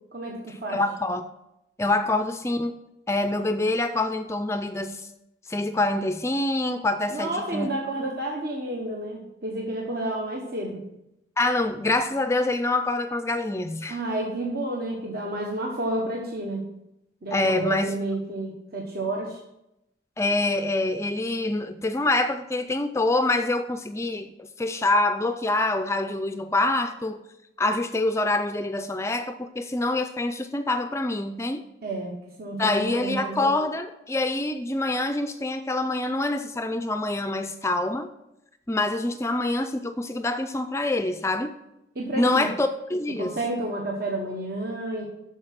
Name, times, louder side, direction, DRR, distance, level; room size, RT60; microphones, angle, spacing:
voice 1, 0.1-0.8 7.1-10.9 13.9-16.7 17.2-19.4 31.8-33.4 41.9-42.5 43.2-45.1, right 1 dB, 55° right, -1 dB, 1.3 m, -30 dB
voice 2, 0.7-1.3 1.8-2.7 3.1-5.0 5.5-7.7 11.4-14.0 17.3-18.0 20.2-27.2 27.6-31.6 32.6-38.1 38.7-41.5 42.2-43.4, left 2 dB, 15° left, 9 dB, 0.4 m, -25 dB
13.0 x 4.8 x 5.9 m, 0.88 s
head